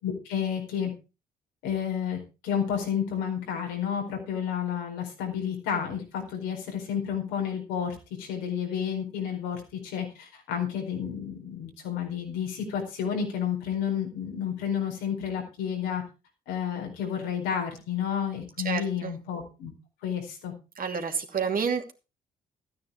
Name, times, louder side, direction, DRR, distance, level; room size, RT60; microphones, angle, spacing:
voice 1, 0.0-0.9 1.6-16.0 16.5-19.7 20.0-20.5, left 8 dB, 80° left, 2 dB, 4.5 m, -31 dB
voice 2, 18.6-19.1 20.8-21.9, right 6 dB, 50° right, 5 dB, 2.7 m, -29 dB
14.0 x 9.5 x 4.7 m, 0.30 s
hypercardioid pair, 45°, 19 cm